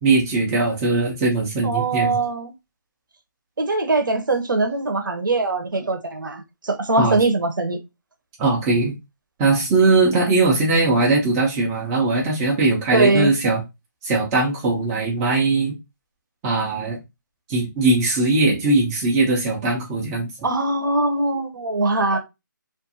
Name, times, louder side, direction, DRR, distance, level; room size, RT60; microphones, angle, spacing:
voice 1, 0.0-2.2 7.0-7.2 8.4-8.9 9.4-13.6 14.0-15.7 16.4-17.0 17.5-20.3, right 3 dB, 10° right, 0.4 m, -20 dB
voice 2, 1.6-2.5 3.6-7.8 12.9-13.3 20.4-22.2, right 2 dB, 70° right, 0.7 m, -21 dB
2.5 x 2.3 x 2.6 m
figure-of-eight pair, 160°, 11 cm